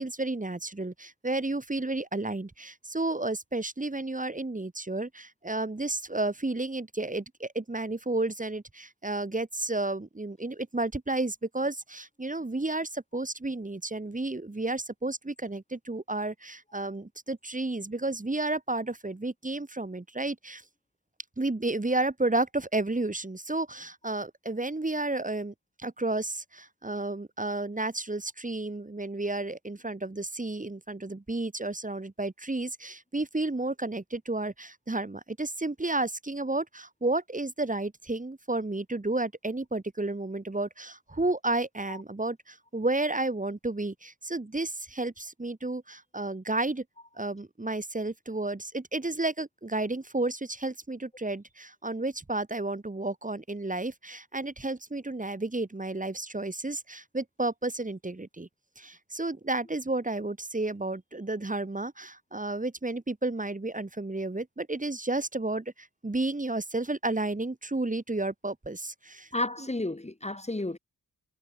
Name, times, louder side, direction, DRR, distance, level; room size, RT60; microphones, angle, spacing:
voice 1, 0.0-20.6 21.4-25.5 25.8-46.8 47.2-58.5 58.8-69.3 69.6-69.7, right 2 dB, 20° right, 4.3 m, -32 dB
voice 2, 69.3-70.8, left 2 dB, 20° left, 3.5 m, -31 dB
wide cardioid pair, 135°, 36 cm